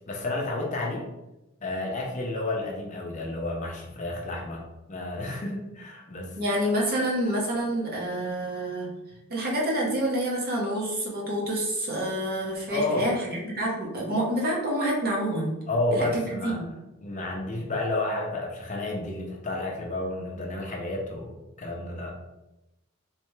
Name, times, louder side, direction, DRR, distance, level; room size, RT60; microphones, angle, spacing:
voice 1, 0.1-1.1 1.6-4.6 4.9-6.4 12.7-13.2 15.7-16.6 17.0-22.1, left 2 dB, 35° left, 0 dB, 0.6 m, -31 dB
voice 2, 6.3-8.9 9.3-15.5 15.9-16.6, right 1 dB, 45° right, -3 dB, 1.0 m, -28 dB
3.3 x 3.3 x 3.1 m, 0.96 s
head